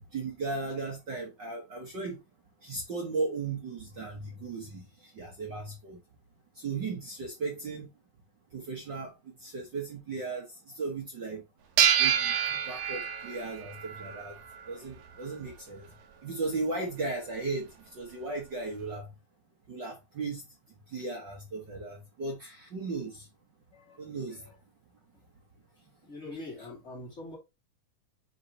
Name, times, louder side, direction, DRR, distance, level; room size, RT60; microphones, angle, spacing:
voice 1, 0.1-2.2 2.6-6.0 6.6-7.9 8.5-9.1 9.4-10.5 10.7-11.4 12.0-12.4 12.7-14.4 14.7-15.9 16.2-19.1 19.7-20.4 20.9-23.3 24.0-24.5 26.6-26.7, right 3 dB, 55° right, 1.3 m, -36 dB
sound 1, 11.8-14.7, right 9 dB, 85° right, 3.0 m, -28 dB
voice 2, 26.0-27.4, left 2 dB, 20° left, 2.7 m, -43 dB
9.1 x 4.1 x 2.9 m
omnidirectional pair, 4.0 m